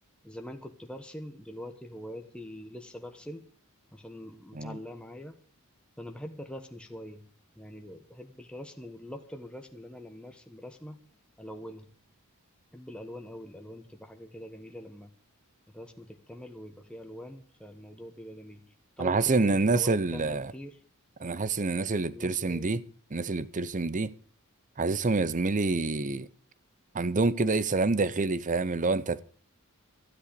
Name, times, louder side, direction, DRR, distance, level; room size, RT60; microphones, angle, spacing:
voice 1, 0.2-3.4 3.9-5.4 6.0-7.2 7.6-11.0 11.4-11.9 12.7-15.1 15.7-18.6 19.0-20.8 22.1-22.6, left 1 dB, 5° left, 1.1 m, -43 dB
voice 2, 19.0-20.5 21.2-22.8 23.1-24.1 24.8-26.3 26.9-29.2, right 3 dB, 35° right, 0.7 m, -27 dB
13.0 x 11.0 x 6.8 m
head